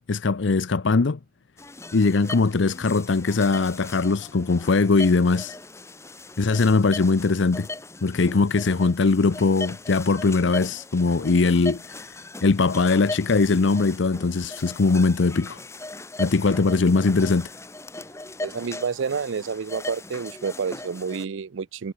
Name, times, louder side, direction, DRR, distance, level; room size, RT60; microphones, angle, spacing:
voice 1, 0.1-1.2 1.9-5.6 6.4-7.7 8.0-15.6 16.2-17.5, left 3 dB, 70° left, 0.6 m, -21 dB
sound 1, 1.6-21.3, left 2 dB, 15° left, 1.4 m, -39 dB
voice 2, 18.4-21.9, right 5 dB, 75° right, 0.5 m, -29 dB
head